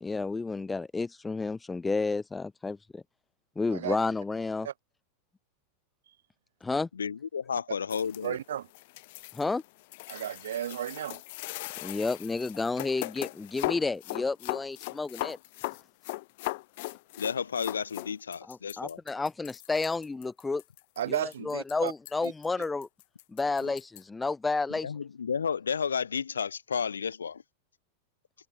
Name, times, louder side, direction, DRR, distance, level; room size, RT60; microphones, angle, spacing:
voice 1, 0.0-3.0 3.6-4.7 6.6-6.9 9.3-9.6 11.8-15.4 18.5-20.6 21.1-22.9 23.3-24.9, left 3 dB, 10° left, 0.6 m, -31 dB
voice 2, 6.9-8.4 17.2-19.0 24.8-27.4, left 6 dB, 70° left, 0.3 m, -32 dB
sound 1, 7.9-24.0, left 21 dB, 50° left, 0.8 m, -39 dB
voice 3, 8.2-8.7 10.1-11.2 21.0-21.9 22.2-22.3, right 11 dB, 60° right, 0.4 m, -33 dB
figure-of-eight pair, 90°, 0 cm